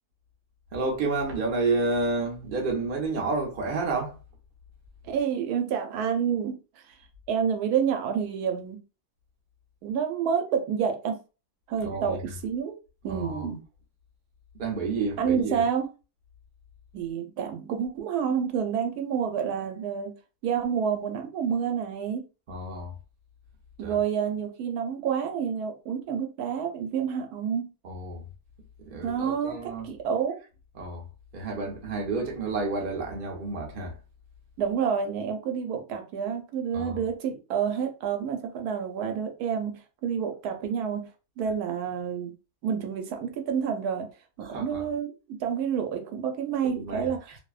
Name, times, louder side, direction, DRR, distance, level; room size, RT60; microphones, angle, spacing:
voice 1, 0.7-4.2 11.8-12.3 13.1-13.5 14.5-15.6 22.5-22.9 23.8-24.0 27.8-28.3 28.8-29.9 30.7-31.1 31.3-34.0 36.7-37.0 44.4-44.9 46.6-47.4, right 3 dB, 50° right, 0.6 m, -30 dB
voice 2, 5.0-6.6 7.3-8.8 9.8-11.2 11.7-12.2 12.4-12.7 13.0-13.6 15.2-15.9 16.9-20.1 20.4-22.2 23.8-27.7 29.0-30.4 34.6-41.1 41.4-42.3 42.6-44.1 44.4-47.2, right 7 dB, 80° right, 1.1 m, -28 dB
2.6 x 2.1 x 2.3 m
omnidirectional pair, 1.6 m